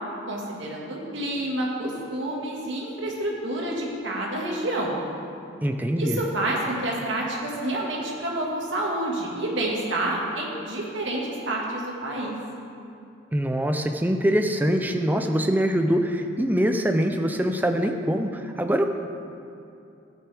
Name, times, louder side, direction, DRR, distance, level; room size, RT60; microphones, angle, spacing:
voice 1, 0.3-5.0 6.0-12.4, right 1 dB, 70° right, -3 dB, 1.8 m, -28 dB
voice 2, 5.6-6.2 13.3-18.9, equal, 10° right, 5 dB, 0.4 m, -23 dB
13.0 x 9.0 x 3.4 m, 2.6 s
head